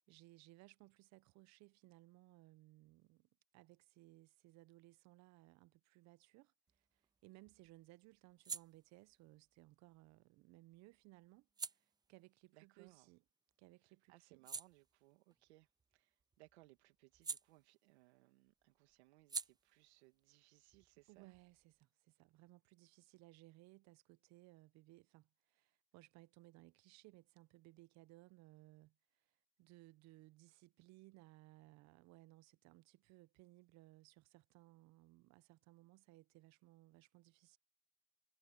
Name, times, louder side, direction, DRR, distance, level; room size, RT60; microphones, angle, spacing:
voice 1, 0.0-13.2 13.6-14.5 21.1-37.6, right 20 dB, 55° right, 0.9 m, -63 dB
sound 1, 6.7-13.6 14.0-18.2 18.4-21.9, right 5 dB, 10° right, 0.5 m, -53 dB
voice 2, 12.5-13.1 13.8-21.3, right 20 dB, 80° right, 2.5 m, -67 dB
supercardioid pair, 105°, 32 cm